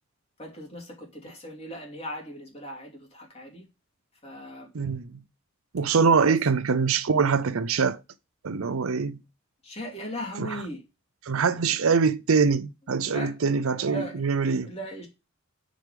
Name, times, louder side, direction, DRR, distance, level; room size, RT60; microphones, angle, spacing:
voice 1, 0.4-3.7 4.2-4.7 6.3-6.4 9.6-10.8 11.5-11.6 13.0-13.3 13.7-14.2 14.7-15.1, equal, 30° left, 2.9 m, -38 dB
voice 2, 4.7-5.2 5.7-8.0 8.4-9.2 10.4-10.6 11.2-14.7, right 5 dB, 80° right, 0.6 m, -24 dB
6.5 x 5.2 x 5.0 m
head